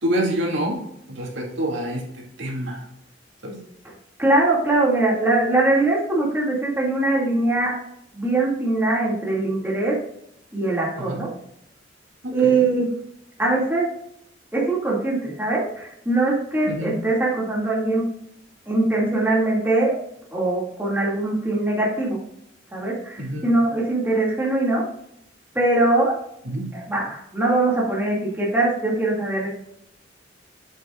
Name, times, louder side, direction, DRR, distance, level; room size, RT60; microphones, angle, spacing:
voice 1, 0.0-2.9 3.4-3.6 11.0-11.2 12.2-12.7 16.7-16.9 23.2-23.5 26.4-26.7, right 1 dB, 80° right, -1 dB, 2.3 m, -27 dB
voice 2, 4.2-7.8 8.1-10.0 10.5-11.3 12.3-12.9 13.4-13.9 14.5-18.1 18.7-19.9 20.3-22.2 22.7-24.8 25.5-26.1 26.7-29.5, right 2 dB, 10° right, -4 dB, 2.3 m, -22 dB
8.1 x 8.1 x 2.4 m, 0.76 s
head